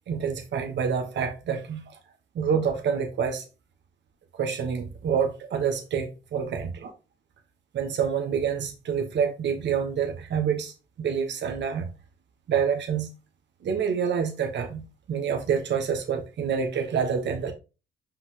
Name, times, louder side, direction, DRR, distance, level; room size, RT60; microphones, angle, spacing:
voice 1, 0.1-1.8 2.3-3.4 4.4-6.9 7.7-10.7 11.0-11.9 12.5-13.1 13.6-14.8 15.1-17.5, right 7 dB, 65° right, 1.5 m, -27 dB
5.8 x 5.4 x 3.1 m
cardioid pair, 90°, 20 cm